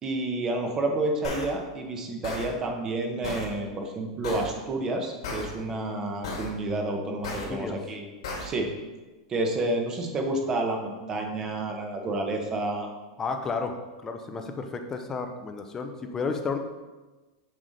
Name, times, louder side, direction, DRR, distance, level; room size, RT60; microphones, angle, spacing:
voice 1, 0.0-8.1 8.4-8.7 9.3-12.9, right 2 dB, 20° right, 3 dB, 0.9 m, -30 dB
sound 1, 1.2-1.4 2.2-2.5 3.2-3.5 4.2-4.5 5.2-5.4 6.2-6.5 7.2-7.4 8.2-8.4, left 3 dB, 90° left, 2.3 m, -33 dB
voice 2, 13.2-13.7 14.0-16.6, left 4 dB, 15° left, 5 dB, 0.5 m, -32 dB
7.5 x 4.8 x 4.0 m, 1.2 s
supercardioid pair, 155°, 3 cm